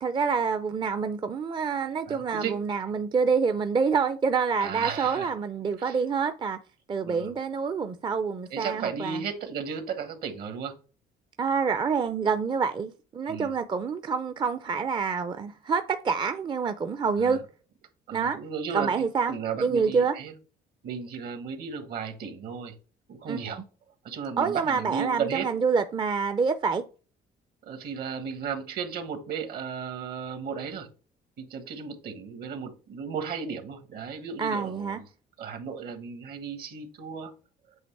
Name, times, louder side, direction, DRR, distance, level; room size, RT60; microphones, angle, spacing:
voice 1, 0.0-6.6 6.9-9.2 11.4-17.4 18.1-18.4 18.7-19.3 19.6-20.2 23.3-23.5 24.4-26.8 34.4-35.0, right 5 dB, 30° right, 0.5 m, -27 dB
voice 2, 2.0-2.6 4.6-5.3 5.8-6.0 7.0-7.3 8.5-10.7 13.3-13.5 17.2-17.4 18.1-20.3 20.8-22.7 23.1-23.6 24.0-25.5 27.6-30.9 31.4-35.1 35.4-37.3, right 6 dB, 65° right, 1.5 m, -35 dB
8.0 x 3.0 x 4.6 m
cardioid pair, 110°, 17 cm